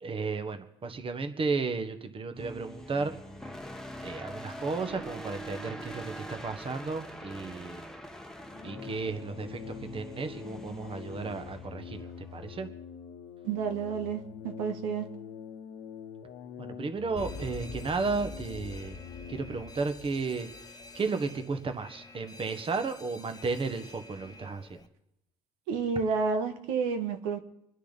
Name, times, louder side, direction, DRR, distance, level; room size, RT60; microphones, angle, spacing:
voice 1, 0.0-3.1 4.0-7.8 8.6-12.7 16.6-19.0 19.3-24.8, right 4 dB, 35° right, 1.4 m, -34 dB
sound 1, 2.4-12.7, equal, 5° left, 1.2 m, -44 dB
sound 2, 8.5-19.8, left 7 dB, 75° left, 1.3 m, -45 dB
voice 2, 13.4-15.1 25.7-27.4, right 5 dB, 85° right, 1.5 m, -30 dB
Alarm, 17.2-24.9, left 3 dB, 25° left, 1.0 m, -46 dB
26.0 x 10.0 x 4.1 m
supercardioid pair, 75°, 16 cm